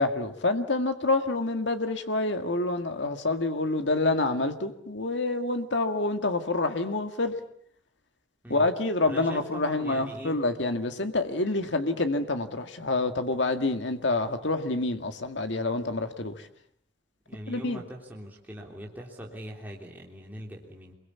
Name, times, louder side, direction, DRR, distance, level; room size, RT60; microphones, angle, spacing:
voice 1, 0.0-7.4 8.5-16.5 17.5-17.8, left 2 dB, 70° left, 2.0 m, -27 dB
voice 2, 9.1-10.4 17.3-20.9, equal, 10° right, 3.4 m, -41 dB
28.0 x 23.0 x 8.5 m
head